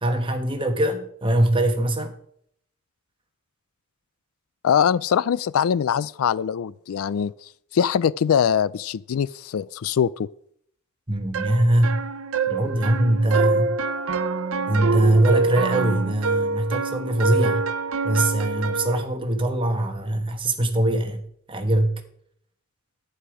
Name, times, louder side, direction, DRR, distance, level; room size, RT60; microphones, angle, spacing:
voice 1, 0.0-2.1 11.1-12.0 12.5-13.8 14.7-17.6 18.0-21.9, right 1 dB, 25° right, 1.4 m, -22 dB
voice 2, 4.6-7.3 7.7-10.3, left 8 dB, 75° left, 0.4 m, -22 dB
sound 1, 11.3-19.0, right 4 dB, 70° right, 0.7 m, -25 dB
11.0 x 9.6 x 4.9 m
head